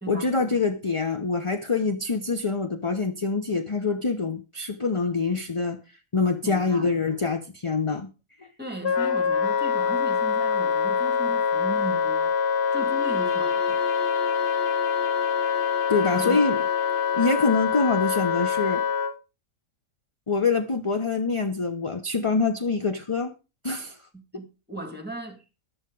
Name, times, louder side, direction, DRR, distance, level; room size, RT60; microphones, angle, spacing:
voice 1, 0.1-5.8 6.1-8.1 15.9-16.6 17.1-18.8 20.3-23.3 23.6-24.0, left 4 dB, 25° left, 0.7 m, -25 dB
voice 2, 6.4-6.9 8.6-12.4 12.7-13.8 16.1-16.4 24.1-25.4, right 1 dB, 5° right, 2.2 m, -37 dB
Wind instrument woodwind instrument, 8.8-19.1, left 7 dB, 50° left, 1.1 m, -25 dB
Bowed string instrument, 12.6-17.6, left 4 dB, 85° left, 2.2 m, -39 dB
14.5 x 11.0 x 3.9 m
omnidirectional pair, 1.5 m